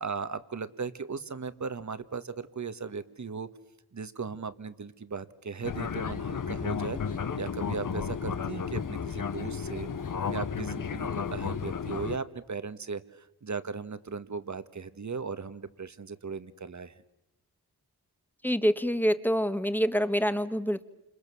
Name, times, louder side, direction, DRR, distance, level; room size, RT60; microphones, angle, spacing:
voice 1, 0.0-3.5 3.9-9.9 10.3-17.0, right 5 dB, 45° right, 13 dB, 1.5 m, -37 dB
Fixed-wing aircraft airplane, 5.6-12.2, left 6 dB, 55° left, 1.1 m, -33 dB
voice 2, 18.4-20.8, equal, 5° left, 11 dB, 1.4 m, -26 dB
29.0 x 28.0 x 7.0 m, 0.91 s
wide cardioid pair, 80°, 38 cm